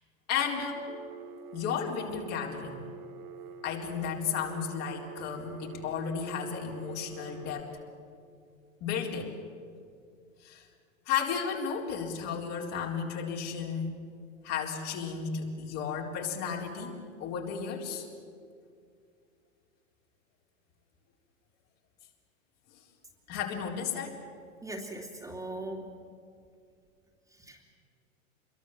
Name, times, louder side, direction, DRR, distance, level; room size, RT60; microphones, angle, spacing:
voice 1, 0.3-0.9 1.5-2.9 3.6-7.7 8.8-9.3 10.4-10.7 11.1-14.0 14.4-18.1 23.3-24.2, left 7 dB, 40° left, 0 dB, 4.1 m, -33 dB
Telephone, 0.9-7.6, right 6 dB, 50° right, 2.6 m, -46 dB
voice 2, 24.6-25.8 27.3-27.8, right 1 dB, 10° right, 0 dB, 3.0 m, -40 dB
27.0 x 22.5 x 7.6 m, 2.3 s
figure-of-eight pair, 95°, 40 cm